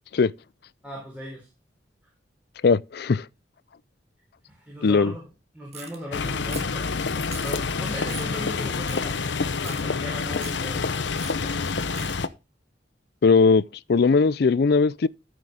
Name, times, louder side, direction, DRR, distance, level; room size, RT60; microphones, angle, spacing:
voice 1, 0.8-1.5 4.5-5.3 5.5-9.2 9.6-10.9, left 1 dB, 10° right, 4.2 m, -38 dB
voice 2, 2.6-3.2 4.8-5.1 13.2-13.6 13.9-15.1, left 4 dB, 60° left, 0.4 m, -19 dB
sound 1, 5.7-6.0 6.5-6.8 7.3-7.5 8.1-8.3 8.9-9.0 9.6-9.8 10.4-10.6 11.2-11.3 12.0-12.2, right 7 dB, 40° right, 1.8 m, -40 dB
sound 2, 6.1-12.3, left 4 dB, 80° left, 0.8 m, -27 dB
14.0 x 6.2 x 3.4 m
head